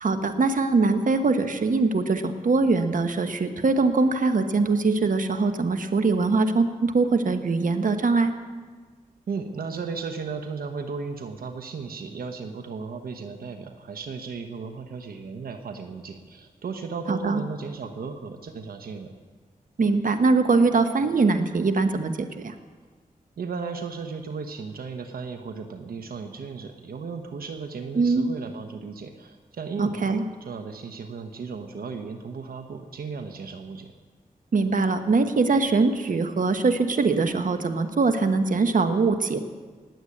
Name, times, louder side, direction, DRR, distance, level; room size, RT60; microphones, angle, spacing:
voice 1, 0.0-8.3 17.1-17.4 19.8-22.5 27.9-28.3 29.8-30.2 34.5-39.4, right 3 dB, 65° right, 8 dB, 1.2 m, -22 dB
voice 2, 9.3-19.1 23.4-33.9, right 5 dB, 85° right, 6 dB, 1.1 m, -35 dB
19.5 x 8.1 x 8.6 m, 1.4 s
cardioid pair, 55°, 15 cm